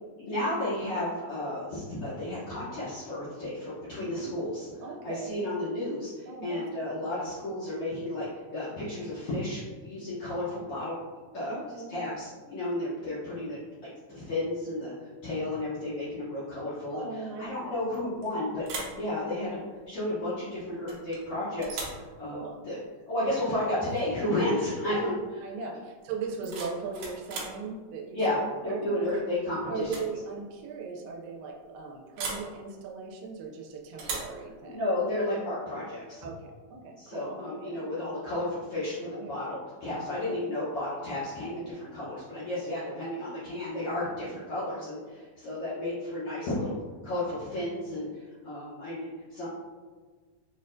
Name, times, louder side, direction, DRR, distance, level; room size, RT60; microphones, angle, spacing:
voice 1, 0.2-11.0 11.3-11.6 11.9-13.6 14.1-17.0 17.4-19.6 19.9-22.8 23.1-25.2 28.1-28.4 28.6-30.0 34.6-36.2 37.0-49.5, left 1 dB, 85° left, -11 dB, 1.2 m, -32 dB
voice 2, 3.9-4.5 4.8-5.5 6.3-7.1 11.5-12.0 15.3-15.6 16.9-17.8 22.3-22.6 24.9-25.1 25.4-29.0 29.7-34.8 36.2-37.9 39.0-39.4 39.9-40.2 42.6-43.0 44.2-44.5 44.7-45.0, right 5 dB, 90° right, 0 dB, 2.3 m, -39 dB
sound 1, 17.9-18.3 18.6-19.0 20.9-21.2 21.6-22.0 23.9-24.1 24.4-24.8 26.2-27.6 29.1-29.4 29.8-30.1 30.4-30.5 32.2-32.5 34.0-34.4, right 4 dB, 75° right, 1.8 m, -38 dB
5.8 x 2.1 x 2.5 m, 1.4 s
omnidirectional pair, 3.8 m